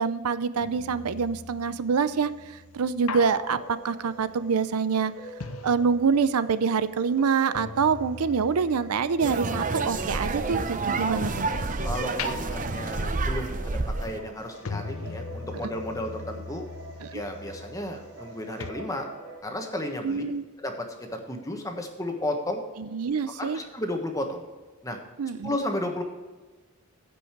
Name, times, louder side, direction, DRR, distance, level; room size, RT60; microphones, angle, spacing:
voice 1, 0.0-2.3 2.7-5.1 5.6-11.5 17.0-17.2 20.0-20.4 22.9-23.6 25.2-25.6, right 5 dB, 90° right, 14 dB, 0.5 m, -25 dB
sound 1, 0.5-6.5 6.8-11.6 12.0-18.3 18.6-18.7, left 5 dB, 75° left, 0.6 m, -41 dB
sound 2, 3.0-19.4, right 3 dB, 70° right, 1.8 m, -46 dB
sound 3, 9.2-14.2, right 3 dB, 35° right, 0.7 m, -29 dB
voice 2, 11.8-16.7 17.1-19.1 19.4-20.2 20.6-22.6 23.3-24.4 24.8-25.0 25.4-26.0, left 1 dB, 15° left, 3 dB, 1.2 m, -33 dB
15.5 x 5.4 x 4.6 m, 1.3 s
head